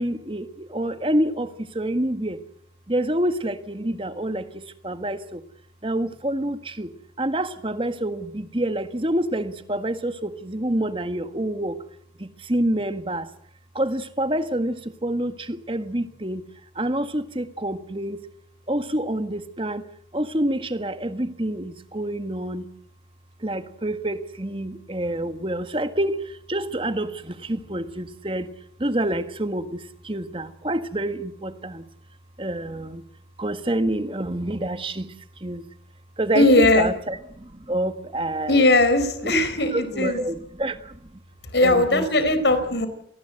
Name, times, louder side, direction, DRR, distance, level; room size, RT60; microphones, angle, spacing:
voice 1, 0.0-2.4 2.9-5.4 5.8-6.9 7.2-11.8 12.2-13.3 13.7-16.4 16.8-18.2 18.7-19.9 20.1-22.7 23.4-28.5 28.8-31.9 32.4-33.0 33.4-35.7 36.2-38.6 39.2-39.3 39.7-41.1 41.6-42.1, right 1 dB, 30° right, 10 dB, 1.6 m, -27 dB
voice 2, 36.3-36.9 38.5-40.2 41.5-42.9, left 2 dB, 75° left, 11 dB, 4.2 m, -19 dB
27.5 x 19.0 x 7.9 m, 0.71 s
head